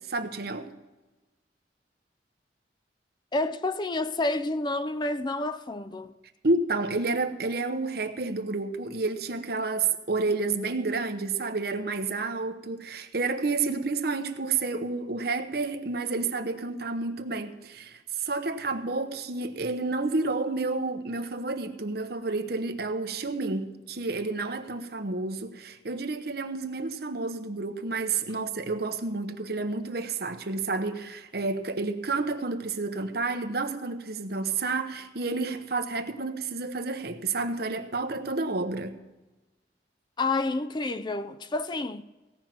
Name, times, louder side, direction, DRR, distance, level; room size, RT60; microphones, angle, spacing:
voice 1, 0.1-0.7 6.4-39.0, right 3 dB, 60° right, 1.0 m, -30 dB
voice 2, 3.3-6.1 40.2-42.0, left 2 dB, 25° left, 0.4 m, -29 dB
17.0 x 5.8 x 7.6 m
head